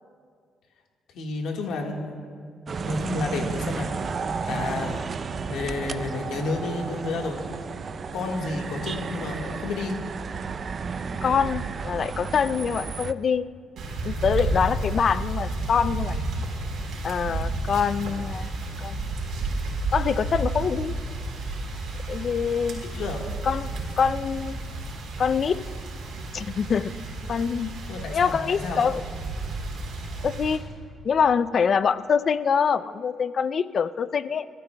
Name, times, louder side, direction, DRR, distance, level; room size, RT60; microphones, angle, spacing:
voice 1, 1.1-2.1 2.8-3.9 4.4-5.0 5.4-7.4 8.1-10.0 22.9-23.2 27.9-29.0, left 3 dB, 80° left, 1 dB, 1.6 m, -31 dB
sound 1, 2.7-13.1, right 5 dB, 45° right, 0.5 m, -32 dB
voice 2, 11.2-13.4 14.0-16.2 17.0-18.5 18.8-19.1 19.9-20.9 22.1-22.8 23.4-24.6 25.2-25.6 26.3-26.9 27.3-27.7 28.1-29.0 30.2-30.6 31.0-34.5, left 6 dB, 50° left, 15 dB, 0.4 m, -25 dB
sound 2, 13.8-30.6, right 2 dB, 75° right, 4.0 m, -31 dB
27.0 x 13.5 x 2.3 m, 2.1 s
cardioid pair, 90°, 0 cm